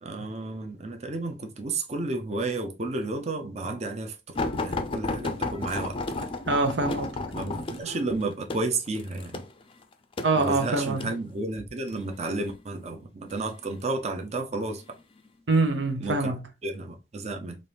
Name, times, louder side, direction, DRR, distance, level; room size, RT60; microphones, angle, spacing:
voice 1, 0.0-6.3 7.3-9.4 10.3-14.8 16.0-16.3 16.6-17.6, right 2 dB, 40° right, 0.6 m, -32 dB
sound 1, 4.3-11.2 11.9-12.4 13.3-14.0 14.7-14.9 15.3-15.4, left 3 dB, 30° left, 0.4 m, -33 dB
voice 2, 6.5-7.1 7.8-8.0 10.2-11.0 15.5-16.4, right 3 dB, 85° right, 0.8 m, -25 dB
4.2 x 2.6 x 3.3 m
head